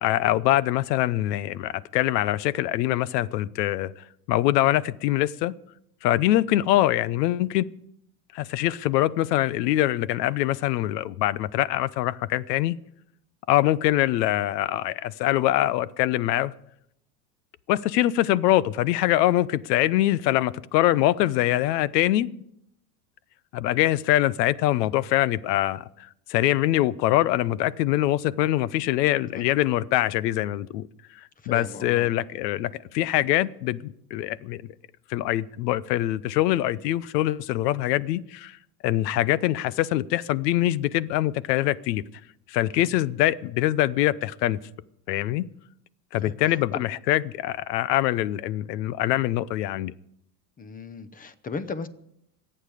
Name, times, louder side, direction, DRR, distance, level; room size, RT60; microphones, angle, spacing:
voice 1, 0.0-3.9 4.3-5.5 6.0-7.7 8.3-12.8 13.5-16.5 17.7-22.4 23.5-30.9 31.5-34.6 35.1-38.6 38.8-42.0 42.5-44.6 45.1-45.5 46.1-49.9, left 14 dB, 80° left, 0.8 m, -24 dB
voice 2, 31.4-32.1 42.7-43.1 46.2-46.9 50.6-51.9, left 4 dB, 15° left, 0.8 m, -37 dB
26.0 x 8.9 x 5.0 m
supercardioid pair, 130°, 48 cm